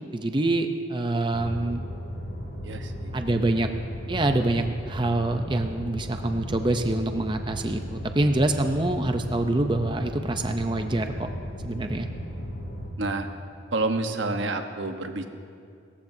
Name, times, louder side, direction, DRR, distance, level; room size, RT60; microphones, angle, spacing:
voice 1, 0.1-1.8 3.1-3.7 4.1-11.3 11.6-12.1, right 2 dB, 25° right, 6 dB, 0.6 m, -25 dB
sound 1, 1.3-12.9, equal, 75° left, 4.1 m, -35 dB
voice 2, 2.6-3.1 13.0-13.3 13.7-15.3, right 2 dB, 80° right, 6 dB, 1.1 m, -28 dB
29.5 x 14.5 x 2.7 m, 2.4 s
head